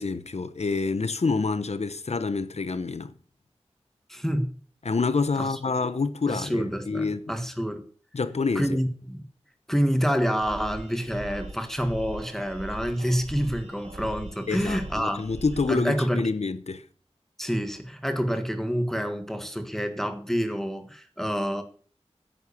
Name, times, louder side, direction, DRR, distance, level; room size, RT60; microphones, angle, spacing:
voice 1, 0.0-3.1 4.8-7.4 8.1-8.7 14.5-16.8, left 4 dB, 80° left, 1.0 m, -27 dB
voice 2, 4.1-4.5 5.4-5.5 6.3-7.8 8.5-9.2 9.7-15.2 15.7-16.3 17.4-21.6, equal, 5° left, 1.6 m, -27 dB
sound 1, 10.4-15.7, right 2 dB, 85° right, 2.3 m, -41 dB
11.0 x 8.1 x 6.9 m
wide cardioid pair, 65°, 11 cm